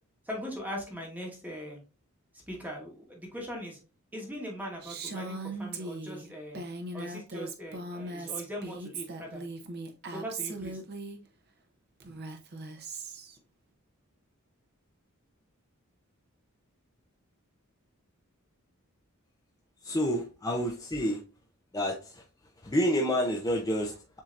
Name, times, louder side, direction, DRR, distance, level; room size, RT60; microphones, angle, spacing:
voice 1, 0.2-1.8 2.5-3.8 4.1-6.6 6.9-9.4 10.1-10.8, equal, 10° right, -1 dB, 1.2 m, -40 dB
Female speech woman speaking, 4.8-11.2 12.0-13.4, right 3 dB, 50° right, 0.8 m, -39 dB
voice 2, 19.8-21.2 21.7-22.2 22.6-24.2, equal, 15° left, 0 dB, 0.6 m, -29 dB
7.3 x 2.8 x 2.5 m, 0.33 s
head